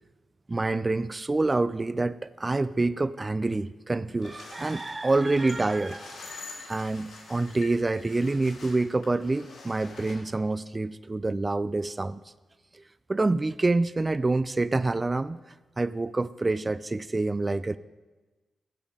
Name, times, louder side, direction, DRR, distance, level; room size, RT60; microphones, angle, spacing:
voice 1, 0.5-6.2 6.7-12.2 12.7-12.8 13.1-15.4 15.8-17.8, right 2 dB, 30° right, 16 dB, 0.3 m, -27 dB
sound 1, 4.2-10.2, left 3 dB, 80° left, 3.0 m, -46 dB
10.5 x 7.0 x 4.9 m, 1.2 s
supercardioid pair, 50°, 0 cm